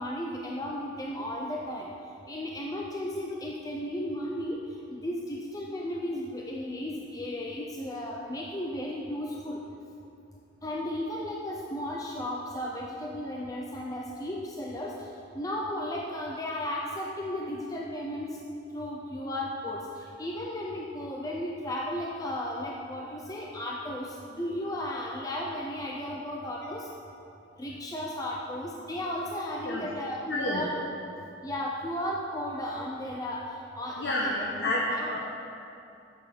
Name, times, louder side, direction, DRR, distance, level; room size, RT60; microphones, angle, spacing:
voice 1, 0.0-1.9 2.3-4.6 4.9-9.6 10.6-14.9 15.4-18.4 18.7-26.9 27.6-30.7 31.4-33.5 33.8-35.2, left 1 dB, 20° left, -2 dB, 0.7 m, -34 dB
voice 2, 30.2-30.7 34.0-35.2, left 1 dB, 65° left, -3 dB, 1.3 m, -29 dB
13.5 x 8.1 x 4.3 m, 2.7 s
head